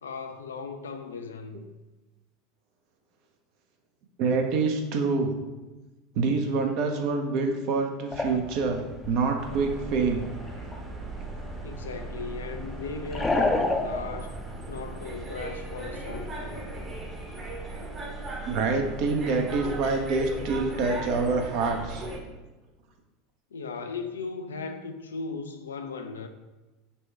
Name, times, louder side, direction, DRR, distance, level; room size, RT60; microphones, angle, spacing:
voice 1, 0.0-1.6 11.6-14.4 14.7-16.7 23.5-26.3, left 4 dB, 80° left, 7 dB, 0.3 m, -37 dB
voice 2, 4.2-5.3 6.2-10.2 18.4-22.1, right 4 dB, 55° right, 4 dB, 0.6 m, -26 dB
sound 1, 8.1-17.1, left 2 dB, 15° left, 0.5 m, -33 dB
sound 2, 9.4-22.2, right 2 dB, 30° right, 0.9 m, -38 dB
4.2 x 2.2 x 4.4 m, 1.1 s
figure-of-eight pair, 80°, 0 cm